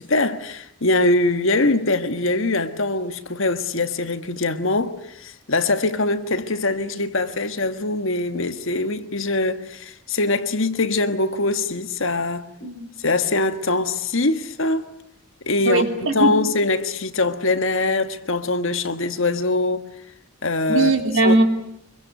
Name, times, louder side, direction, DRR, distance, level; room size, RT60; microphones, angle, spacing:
voice 1, 0.0-12.7 13.0-14.9 15.4-15.8 16.1-19.9 20.4-20.9 21.2-21.4, left 2 dB, 60° left, 1.5 m, -23 dB
voice 2, 15.6-16.4 20.7-21.4, right 2 dB, 60° right, 3.4 m, -19 dB
25.5 x 23.0 x 9.4 m
head